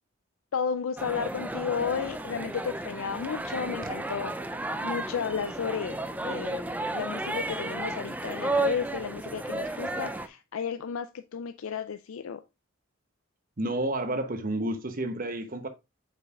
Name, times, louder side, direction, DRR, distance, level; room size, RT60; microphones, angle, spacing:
voice 1, 0.5-4.3 4.8-6.6 6.9-12.4, left 6 dB, 75° left, 0.4 m, -33 dB
sound 1, 1.0-10.3, right 2 dB, 5° right, 0.4 m, -33 dB
voice 2, 13.6-15.7, right 1 dB, 40° right, 0.9 m, -30 dB
8.1 x 5.3 x 2.4 m
head